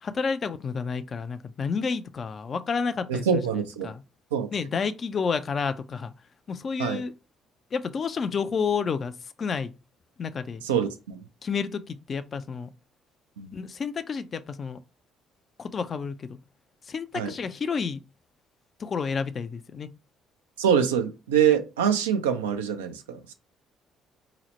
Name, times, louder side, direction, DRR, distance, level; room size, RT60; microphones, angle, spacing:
voice 1, 0.0-3.4 3.8-4.0 4.5-6.1 6.5-7.1 7.7-9.1 9.4-9.7 10.2-10.6 11.4-12.7 13.5-14.8 15.6-16.4 16.9-18.0 18.8-19.9, left 5 dB, 45° left, 0.3 m, -30 dB
voice 2, 3.1-3.9 4.3-4.5 6.8-7.0 10.6-11.2 13.4-13.5 17.1-17.3 20.6-23.3, right 8 dB, 85° right, 0.4 m, -25 dB
2.9 x 2.0 x 4.1 m
hypercardioid pair, 50°, 0 cm